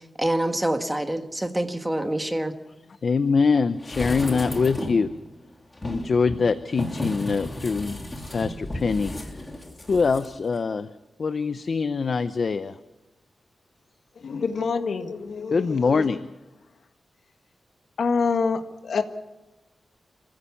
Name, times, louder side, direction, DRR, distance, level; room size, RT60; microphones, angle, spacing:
voice 1, 0.2-2.5, right 1 dB, 10° right, 6 dB, 1.5 m, -26 dB
voice 2, 3.0-5.1 5.8-8.0 8.3-9.5 9.9-10.9 11.2-12.8 15.5-16.2, left 4 dB, 50° left, 11 dB, 0.7 m, -23 dB
sound 1, 3.8-5.1 5.7-10.3 10.6-10.7, left 1 dB, 20° left, 3.0 m, -33 dB
voice 3, 14.2-16.0 18.0-19.0, left 5 dB, 75° left, 7 dB, 1.6 m, -26 dB
28.0 x 15.5 x 7.1 m, 1.0 s
wide cardioid pair, 165°, 0 cm